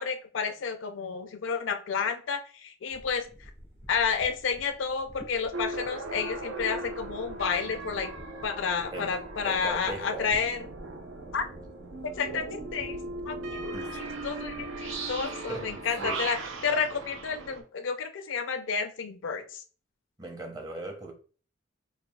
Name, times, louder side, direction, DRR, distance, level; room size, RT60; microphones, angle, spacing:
voice 1, 0.0-3.2 3.9-8.1 8.4-10.6 11.3-11.4 12.2-13.0 13.3-16.4 16.6-19.4, left 6 dB, 75° left, 0.4 m, -31 dB
sound 1, 2.9-15.2, equal, 60° right, 1.4 m, -50 dB
sound 2, 5.5-17.6, right 3 dB, 85° right, 0.6 m, -38 dB
voice 2, 9.5-10.3 13.7-13.9 15.2-16.3 20.2-21.1, right 2 dB, 20° right, 0.6 m, -39 dB
5.2 x 2.3 x 2.2 m
head